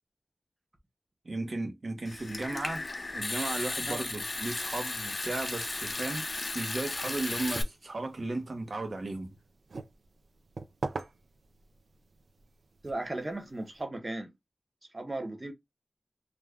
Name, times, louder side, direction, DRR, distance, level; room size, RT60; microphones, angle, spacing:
voice 1, 1.2-2.9 3.1-6.3 6.5-9.3, right 2 dB, 65° right, 0.9 m, -35 dB
Water tap faucet / Sink (filling or washing) / Trickle dribble, 2.1-7.6, left 2 dB, 50° left, 0.4 m, -35 dB
sound 1, 7.3-13.8, right 3 dB, 85° right, 0.4 m, -44 dB
voice 2, 12.8-14.3 14.9-15.5, right 2 dB, 35° right, 0.8 m, -36 dB
2.5 x 2.3 x 3.3 m
wide cardioid pair, 70°, 0 cm